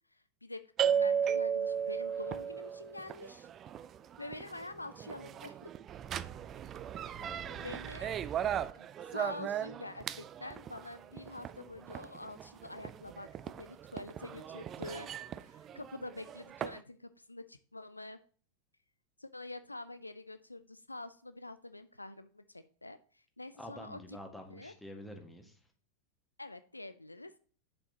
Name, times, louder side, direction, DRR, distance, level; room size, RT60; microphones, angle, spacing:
voice 1, 0.1-0.7 1.0-3.5 4.2-5.7 7.6-8.2 8.7-13.3 13.6-18.2 19.2-24.2 24.5-24.7 26.4-27.4, left 2 dB, 85° left, 12 dB, 0.4 m, -46 dB
sound 1, 0.8-16.8, right 8 dB, 30° right, 0.4 m, -36 dB
voice 2, 7.2-7.8 23.5-25.6, equal, 5° left, 3 dB, 1.7 m, -48 dB
8.3 x 7.1 x 2.9 m, 0.43 s
figure-of-eight pair, 90°, 0 cm